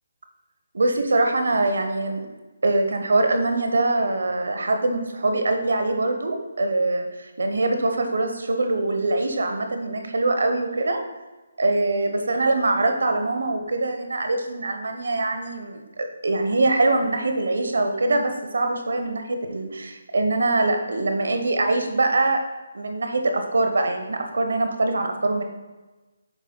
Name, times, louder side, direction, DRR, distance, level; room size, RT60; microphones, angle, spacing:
voice 1, 0.7-2.3 2.6-11.0 11.6-22.4 22.7-25.4, right 2 dB, 75° right, 5 dB, 1.0 m, -23 dB
8.1 x 5.6 x 2.3 m, 1.2 s
hypercardioid pair, 160°, 0 cm